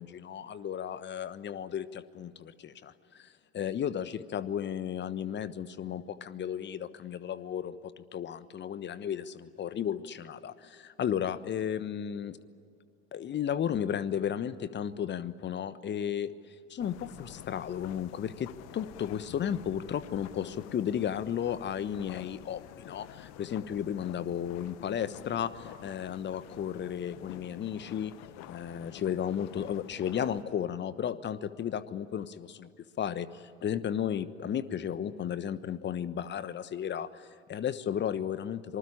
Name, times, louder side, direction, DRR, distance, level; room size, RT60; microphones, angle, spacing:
voice 1, 0.0-12.4 13.1-16.3 16.7-28.1 28.5-32.7 33.0-38.8, left 9 dB, 35° left, 15 dB, 1.2 m, -34 dB
sound 1, 16.8-30.4, left 13 dB, 55° left, 1.2 m, -49 dB
26.0 x 20.0 x 10.0 m, 2.3 s
figure-of-eight pair, 70°, 32 cm